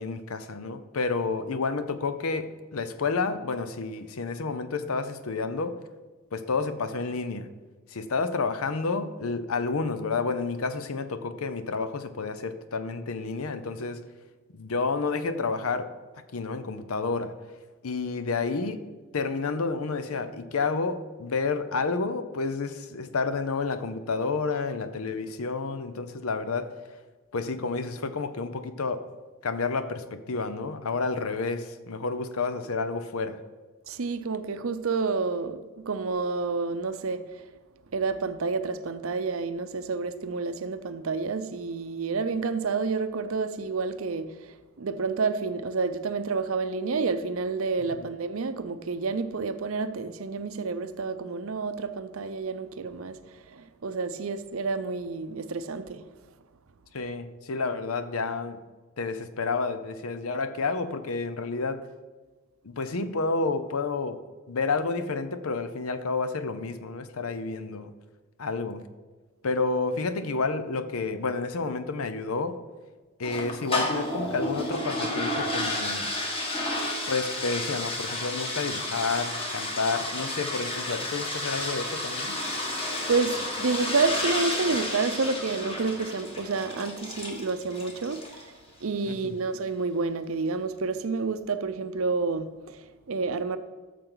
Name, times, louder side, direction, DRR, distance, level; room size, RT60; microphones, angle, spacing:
voice 1, 0.0-5.8 6.3-7.5 7.9-14.1 14.5-15.9 16.3-17.4 17.8-18.8 19.1-26.7 27.3-29.0 29.4-33.4 48.0-48.1 56.9-58.6 59.0-61.9 62.6-64.2 64.5-67.9 68.4-68.9 69.4-72.6 73.2-76.1 77.1-82.4 89.1-89.4, left 4 dB, 80° left, 0.7 m, -30 dB
voice 2, 33.9-35.6 35.9-37.5 37.9-56.0 83.1-88.5 88.8-93.6, right 4 dB, 70° right, 0.6 m, -29 dB
sound 1, 73.2-88.5, left 1 dB, 25° left, 1.5 m, -31 dB
13.5 x 6.7 x 3.9 m
head